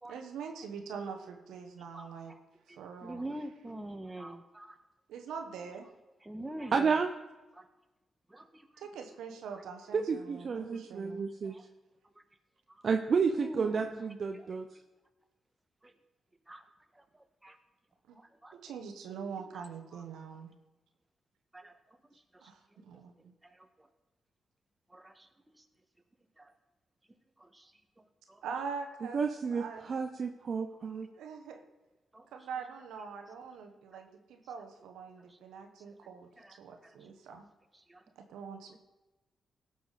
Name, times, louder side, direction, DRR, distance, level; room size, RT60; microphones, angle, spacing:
voice 1, 0.1-2.3 2.7-3.2 5.1-5.9 8.8-11.2 18.1-18.2 18.5-20.5 22.4-23.3 28.4-29.2 29.5-29.9 31.1-31.6 32.3-36.3 36.6-37.5 38.2-38.8, right 6 dB, 80° right, 4 dB, 1.2 m, -43 dB
voice 2, 1.9-2.4 2.7-4.8 6.2-7.0 7.5-7.7 8.3-8.9 9.5-9.6 11.4-11.7 12.1-12.2 12.7-12.9 13.3-14.1 14.3-14.5 15.8-15.9 16.5-16.7 16.9-17.6 18.1-18.6 19.4-19.6 19.9-20.0 21.5-22.5 22.8-22.9 23.4-23.9 24.9-25.2 27.4-28.4 29.9-30.0 30.5-30.6 32.1-32.3 33.9-34.0 35.2-35.4 36.4-37.1 37.7-38.0 38.7-38.8, right 1 dB, 15° right, 6 dB, 1.6 m, -46 dB
voice 3, 6.7-7.1 9.9-11.6 12.8-14.7 29.1-31.1, right 5 dB, 55° right, 5 dB, 0.7 m, -31 dB
17.0 x 6.8 x 4.1 m, 1.1 s
hypercardioid pair, 45°, 0 cm